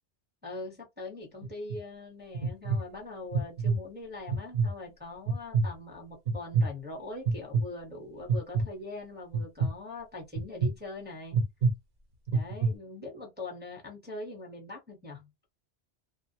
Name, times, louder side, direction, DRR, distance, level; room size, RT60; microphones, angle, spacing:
voice 1, 0.4-11.4 12.3-15.3, left 2 dB, 10° right, 0.7 m, -42 dB
sound 1, 1.4-1.8 2.3-2.8 3.3-3.8 4.3-4.7 5.3-5.7 6.3-6.7 7.3-7.6 8.3-8.7 9.3-9.7 10.4-10.7 11.3-11.7 12.3-12.7, right 4 dB, 50° right, 0.8 m, -26 dB
2.6 x 2.2 x 2.8 m
omnidirectional pair, 1.2 m